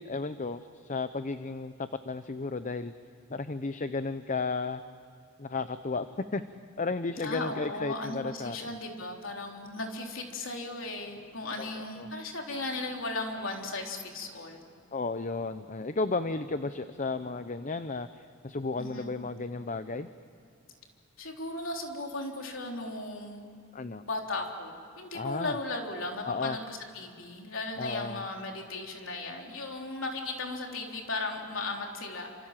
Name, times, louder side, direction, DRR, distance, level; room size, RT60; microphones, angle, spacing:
voice 1, 0.0-2.9 3.3-4.8 5.4-6.4 6.8-8.8 11.6-12.1 14.9-20.1 23.7-24.0 25.1-25.6 26.3-26.6 27.8-28.2, left 3 dB, 40° left, 11 dB, 0.7 m, -33 dB
voice 2, 7.2-14.7 18.8-19.2 21.2-23.5 24.0-32.3, left 2 dB, 70° left, 1 dB, 3.8 m, -36 dB
29.0 x 27.0 x 7.5 m, 2.4 s
head